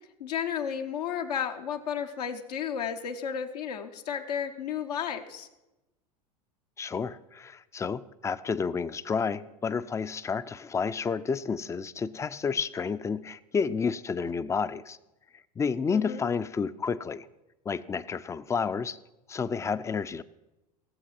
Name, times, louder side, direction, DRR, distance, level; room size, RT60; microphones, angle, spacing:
voice 1, 0.2-5.5 15.9-16.3, left 8 dB, 75° left, 4 dB, 1.0 m, -33 dB
voice 2, 6.8-15.0 15.6-17.3 17.7-19.0 19.3-20.2, left 5 dB, 15° left, 14 dB, 0.5 m, -30 dB
17.0 x 7.6 x 5.9 m, 0.99 s
hypercardioid pair, 85°, 20 cm